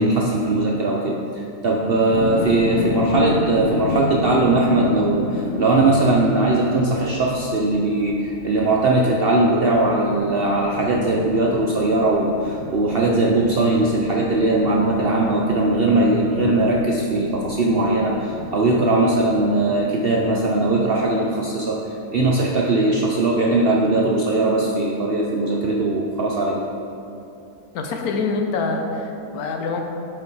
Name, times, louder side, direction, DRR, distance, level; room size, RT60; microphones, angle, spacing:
voice 1, 0.0-26.7, right 2 dB, 65° right, -1 dB, 0.6 m, -20 dB
sound 1, 2.1-21.1, left 3 dB, 60° left, 0.6 m, -31 dB
voice 2, 27.7-29.8, left 4 dB, 80° left, 3 dB, 1.3 m, -25 dB
7.4 x 5.6 x 4.7 m, 2.8 s
omnidirectional pair, 1.6 m